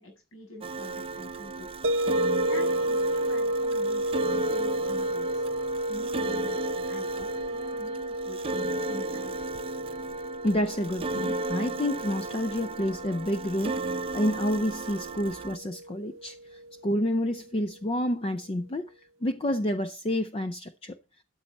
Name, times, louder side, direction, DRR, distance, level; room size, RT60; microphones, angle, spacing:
voice 1, 0.0-1.7 2.2-5.4 5.9-6.6 6.9-9.5, left 1 dB, 75° left, 7.1 m, -46 dB
sound 1, 0.6-15.6, right 2 dB, 25° right, 0.6 m, -34 dB
sound 2, 1.8-16.8, right 1 dB, 70° right, 0.7 m, -32 dB
voice 2, 10.4-18.9 19.2-21.0, left 1 dB, 30° left, 0.5 m, -29 dB
13.0 x 7.8 x 4.1 m
head